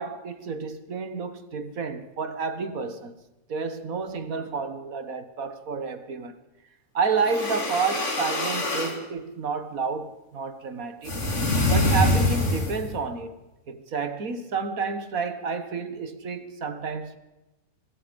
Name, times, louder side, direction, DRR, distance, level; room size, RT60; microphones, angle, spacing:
voice 1, 0.0-3.2 3.5-6.4 6.9-11.1 11.7-13.3 13.7-17.2, right 5 dB, 75° right, 1.9 m, -30 dB
sound 1, 7.2-9.0 11.0-12.9, left 1 dB, 55° left, 3.1 m, -25 dB
25.5 x 20.0 x 5.3 m
omnidirectional pair, 1.5 m